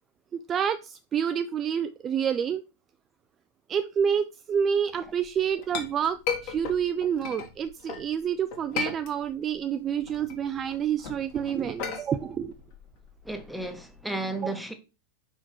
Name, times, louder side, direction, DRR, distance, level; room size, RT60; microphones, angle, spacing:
voice 1, 0.3-2.6 3.7-12.5 14.4-14.5, right 8 dB, 25° right, 0.3 m, -28 dB
Chink clink, 5.2-8.1 8.5-9.6 9.9-14.0, left 6 dB, 45° left, 1.8 m, -36 dB
voice 2, 13.2-14.7, right 2 dB, ahead, 1.1 m, -33 dB
5.8 x 4.5 x 4.5 m
figure-of-eight pair, 90°, 0 cm